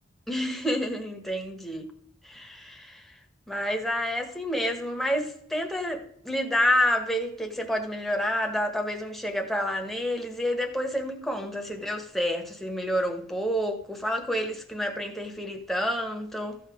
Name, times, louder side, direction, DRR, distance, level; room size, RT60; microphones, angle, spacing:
voice 1, 0.3-1.9 2.2-3.2 3.5-16.6, equal, ahead, 1.3 m, -29 dB
14.0 x 5.7 x 4.9 m
head